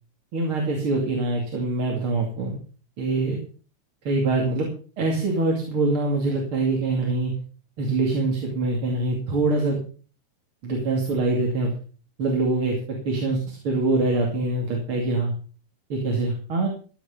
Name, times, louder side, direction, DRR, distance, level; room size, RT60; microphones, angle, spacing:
voice 1, 0.3-2.6 3.0-3.4 4.0-4.7 5.0-7.3 7.8-9.8 10.6-11.7 12.2-15.3 15.9-16.7, right 2 dB, 45° right, 0 dB, 3.2 m, -24 dB
14.5 x 9.2 x 5.6 m, 0.39 s
omnidirectional pair, 3.4 m